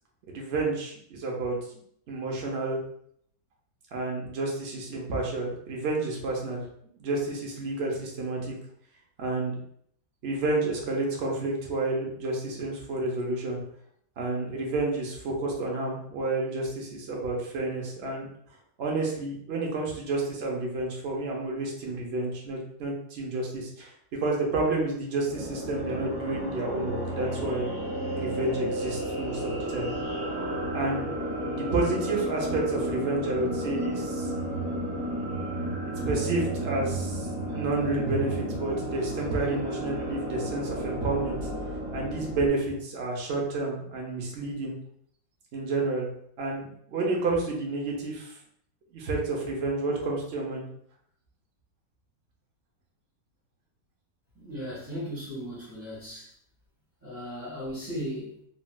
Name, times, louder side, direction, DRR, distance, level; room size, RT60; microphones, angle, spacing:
voice 1, 0.3-1.6 2.1-2.8 3.9-6.6 7.0-8.5 9.2-9.6 10.2-13.6 14.2-18.3 18.8-23.9 24.2-27.7 28.1-29.9 30.7-31.1 31.5-34.3 36.0-41.4 41.9-44.7 45.5-46.1 46.4-48.4 48.9-50.6, right 2 dB, 65° right, -1 dB, 0.6 m, -30 dB
sound 1, 25.2-42.5, right 1 dB, 35° right, 1.2 m, -32 dB
voice 2, 54.3-56.3 57.0-58.4, equal, 15° right, -9 dB, 0.4 m, -37 dB
3.2 x 2.6 x 2.2 m, 0.68 s
omnidirectional pair, 1.9 m